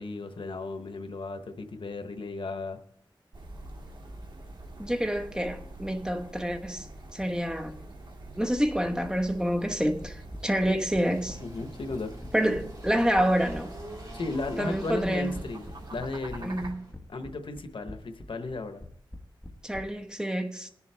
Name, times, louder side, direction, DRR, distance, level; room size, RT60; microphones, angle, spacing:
voice 1, 0.0-2.8 11.4-12.1 14.1-15.6 15.9-16.5 17.1-18.9, left 3 dB, 90° left, 0.9 m, -35 dB
sound 1, 3.3-16.7, right 2 dB, 65° right, 1.7 m, -45 dB
voice 2, 4.8-6.9 7.1-7.8 8.4-11.4 12.3-13.7 14.6-15.4 16.4-16.8 19.6-20.7, equal, 10° right, 1.0 m, -28 dB
sound 2, 10.0-19.8, left 1 dB, 10° left, 1.3 m, -43 dB
Engine, 10.0-16.9, right 1 dB, 45° right, 4.0 m, -48 dB
20.5 x 7.1 x 3.4 m
wide cardioid pair, 65°, 9 cm